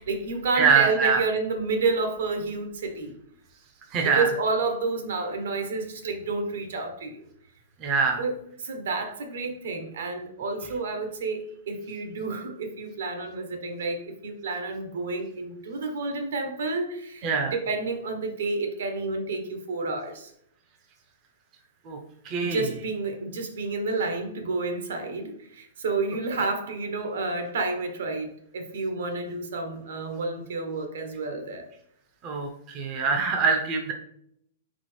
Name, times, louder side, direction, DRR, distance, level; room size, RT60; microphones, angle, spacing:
voice 1, 0.0-3.2 4.0-7.2 8.2-20.3 22.4-31.7, right 3 dB, 75° right, 5 dB, 1.0 m, -30 dB
voice 2, 0.6-1.2 3.9-4.3 7.8-8.2 17.2-17.5 21.9-22.0 22.2-22.6 32.2-33.9, right 5 dB, 25° right, 2 dB, 0.6 m, -23 dB
4.2 x 3.8 x 3.2 m, 0.69 s
hypercardioid pair, 160°, 0 cm